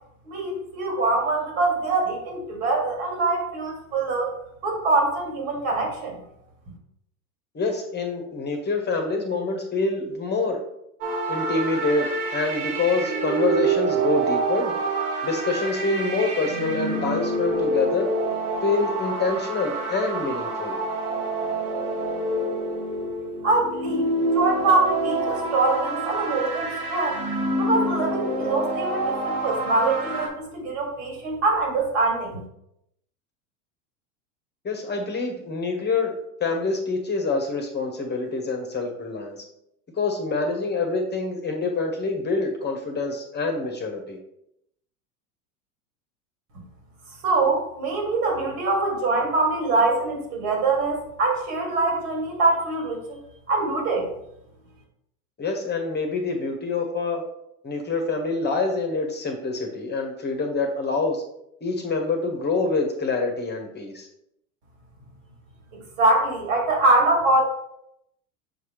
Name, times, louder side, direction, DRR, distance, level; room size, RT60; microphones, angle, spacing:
voice 1, 0.3-4.3 4.6-6.2 23.4-24.1 24.3-27.2 27.6-32.4 47.2-53.2 53.5-54.1 65.7-67.4, right 3 dB, 60° right, 0 dB, 2.5 m, -23 dB
voice 2, 7.5-10.6 11.3-14.7 15.2-18.1 18.6-20.8 34.6-36.1 36.4-39.4 40.0-44.2 55.4-57.2 57.6-61.2 61.6-64.1, left 3 dB, 25° left, 3 dB, 1.2 m, -26 dB
sound 1, 11.0-30.3, right 2 dB, 80° right, 1.7 m, -27 dB
6.7 x 4.7 x 3.2 m, 0.78 s
hypercardioid pair, 95°, 44 cm